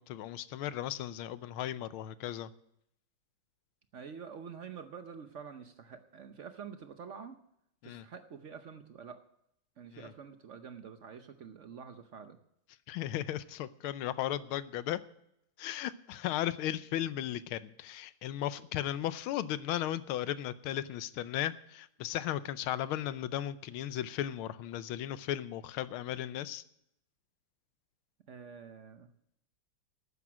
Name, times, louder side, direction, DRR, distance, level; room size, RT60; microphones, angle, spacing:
voice 1, 0.0-2.5 7.8-8.0 9.9-10.1 12.9-15.0 15.6-26.6, left 12 dB, 80° left, 15 dB, 1.5 m, -36 dB
voice 2, 3.9-7.4 7.8-9.2 9.8-12.4 28.3-29.1, right 6 dB, 75° right, 8 dB, 0.6 m, -47 dB
12.0 x 9.4 x 6.2 m, 0.75 s
omnidirectional pair, 2.3 m